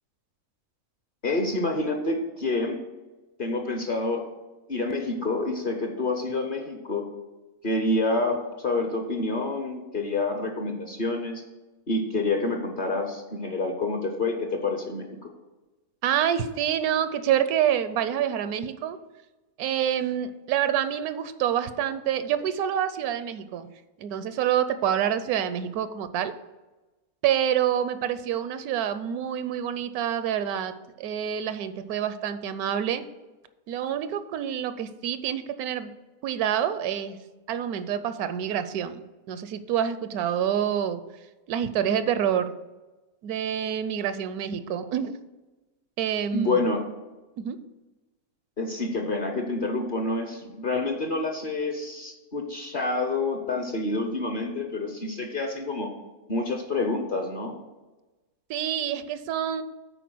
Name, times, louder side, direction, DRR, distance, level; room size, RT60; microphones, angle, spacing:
voice 1, 1.2-2.8 3.4-4.2 4.7-7.0 7.6-11.4 11.9-15.3 46.3-46.8 48.6-55.9 56.3-57.5, left 2 dB, 45° left, 4 dB, 0.8 m, -28 dB
voice 2, 16.0-19.0 19.6-23.7 24.0-26.3 27.2-33.0 33.7-35.9 36.2-37.2 37.5-41.0 41.5-42.5 43.2-45.1 46.0-46.6 47.4-47.6 58.5-59.6, right 9 dB, 80° right, 12 dB, 1.0 m, -27 dB
9.1 x 4.4 x 6.1 m, 1.1 s
omnidirectional pair, 1.6 m